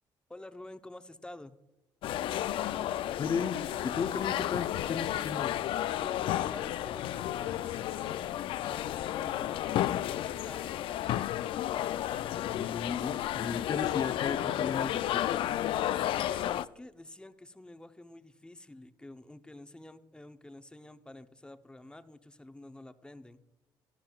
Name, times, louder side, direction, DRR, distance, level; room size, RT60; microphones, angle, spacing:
voice 1, 0.3-1.5 6.0-10.7 16.1-23.4, left 1 dB, 10° left, 9 dB, 0.7 m, -49 dB
sound 1, 2.0-16.6, left 12 dB, 70° left, 0.4 m, -32 dB
voice 2, 3.2-5.5 12.5-15.4, left 6 dB, 45° left, 11 dB, 0.7 m, -35 dB
12.0 x 11.5 x 2.3 m, 1.0 s
supercardioid pair, 75°, 9 cm